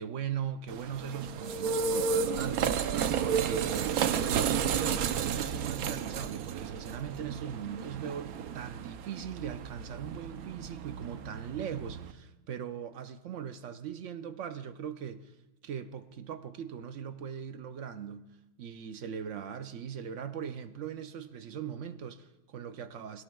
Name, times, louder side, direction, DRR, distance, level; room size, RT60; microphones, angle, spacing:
voice 1, 0.0-15.3 15.6-18.3 18.6-23.2, right 8 dB, 65° right, 0.9 m, -40 dB
sound 1, 0.7-12.1, right 7 dB, 85° right, 1.1 m, -32 dB
21.5 x 17.5 x 2.3 m
omnidirectional pair, 1.5 m